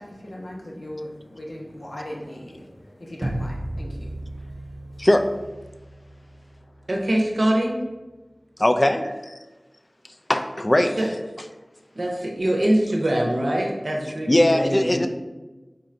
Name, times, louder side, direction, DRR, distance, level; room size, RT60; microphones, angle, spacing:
voice 1, 0.0-5.1, left 1 dB, 80° left, -3 dB, 0.9 m, -39 dB
sound 1, 3.2-8.2, right 1 dB, 45° right, 0.3 m, -36 dB
voice 2, 5.0-5.3 8.6-9.3 10.3-10.9 14.3-15.1, left 1 dB, 35° left, 7 dB, 0.3 m, -20 dB
voice 3, 6.9-7.9 11.0-11.1 11.9-15.0, right 1 dB, 80° right, 0 dB, 0.7 m, -23 dB
3.7 x 2.5 x 4.3 m, 1.2 s
wide cardioid pair, 50°, 0 cm